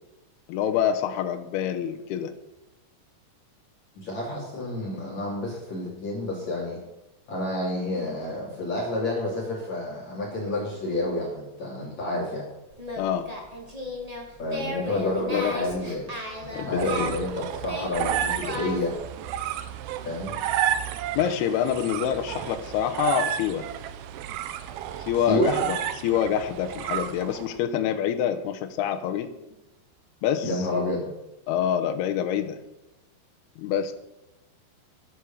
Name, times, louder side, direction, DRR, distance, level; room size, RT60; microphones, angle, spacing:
voice 1, 0.5-2.3 13.0-13.3 14.8-15.5 16.5-17.1 21.2-23.7 25.0-25.8 26.0-29.3 30.2-30.5 31.5-32.6 33.6-33.9, left 9 dB, 75° left, 6 dB, 2.7 m, -26 dB
voice 2, 4.0-6.8 7.3-12.5 14.4-16.1 16.7-19.0 20.0-20.3 25.1-25.6 30.4-31.1, left 1 dB, 45° left, -4 dB, 3.4 m, -29 dB
Singing, 12.7-18.9, left 1 dB, 60° right, 0.4 m, -36 dB
sound 1, 16.4-27.6, right 10 dB, 80° right, 2.2 m, -31 dB
11.5 x 8.1 x 7.2 m, 0.96 s
omnidirectional pair, 5.1 m